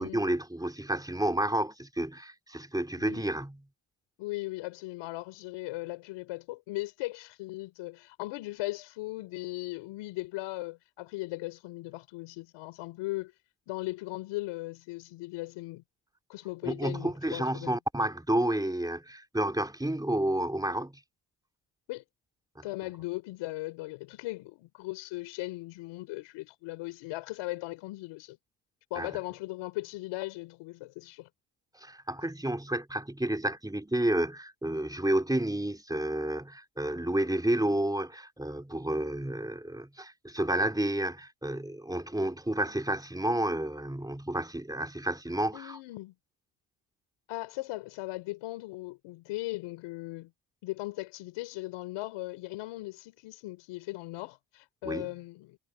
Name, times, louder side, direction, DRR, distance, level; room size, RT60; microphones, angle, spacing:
voice 1, 0.0-3.6 16.6-21.0 22.6-22.7 28.9-29.1 31.8-45.8 54.8-55.1, right 1 dB, 10° right, 3.8 m, -30 dB
voice 2, 4.2-13.3 13.7-15.8 16.3-17.8 21.9-22.0 22.6-28.4 28.9-31.3 45.5-46.1 47.3-50.3 50.6-55.6, left 20 dB, 85° left, 4.3 m, -38 dB
supercardioid pair, 55°, 48 cm